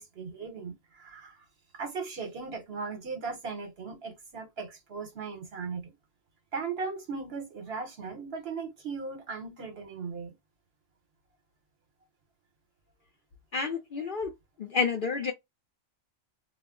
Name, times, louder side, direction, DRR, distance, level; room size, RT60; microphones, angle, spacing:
voice 1, 0.0-1.4 1.7-5.9 6.5-10.4, right 4 dB, 55° right, 1.0 m, -38 dB
voice 2, 13.5-14.3 14.6-15.3, left 5 dB, 55° left, 0.6 m, -29 dB
2.3 x 2.0 x 3.6 m
omnidirectional pair, 1.3 m